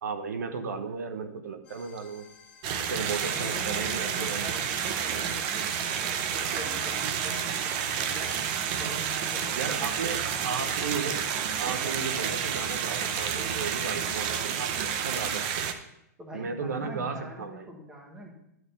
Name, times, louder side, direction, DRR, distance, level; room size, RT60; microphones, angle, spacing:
voice 1, 0.0-2.3 2.8-4.5 9.6-11.2 11.6-15.7 16.3-17.7, right 5 dB, 85° right, 8 dB, 1.0 m, -35 dB
sound 1, 1.6-11.3, left 5 dB, 15° left, 1.9 m, -54 dB
sound 2, 2.6-15.7, right 8 dB, 30° right, 0.6 m, -30 dB
voice 2, 3.3-8.4 8.7-10.7 16.2-18.3, equal, 10° right, 1 dB, 1.0 m, -44 dB
11.0 x 3.7 x 6.8 m, 0.79 s
hypercardioid pair, 170°, 9 cm